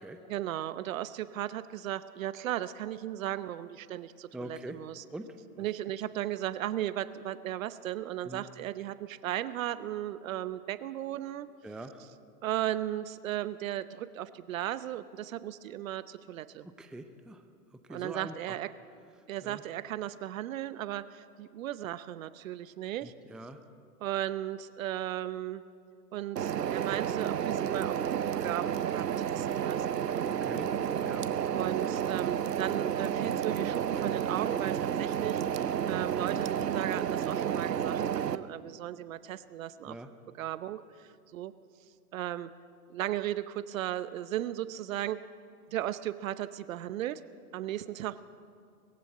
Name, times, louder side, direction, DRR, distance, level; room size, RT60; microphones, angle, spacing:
voice 1, 0.2-5.0 5.6-11.5 12.4-16.7 17.9-18.7 19.3-23.1 24.0-25.6 26.1-30.1 31.5-40.0 40.3-41.5 42.1-42.5 42.9-45.2 45.7-47.2 47.5-48.2, right 13 dB, 55° right, 15 dB, 0.9 m, -36 dB
voice 2, 4.3-4.8 5.1-5.3 5.6-5.7 8.2-8.4 11.6-12.0 16.8-17.4 17.9-18.3 19.4-19.6 23.0-23.6 30.4-30.7 31.0-31.3 39.9-40.1, right 2 dB, ahead, 8 dB, 0.6 m, -43 dB
sound 1, 26.4-38.4, right 9 dB, 85° right, 0.9 m, -31 dB
21.0 x 15.5 x 8.5 m, 2.3 s
hypercardioid pair, 115°, 47 cm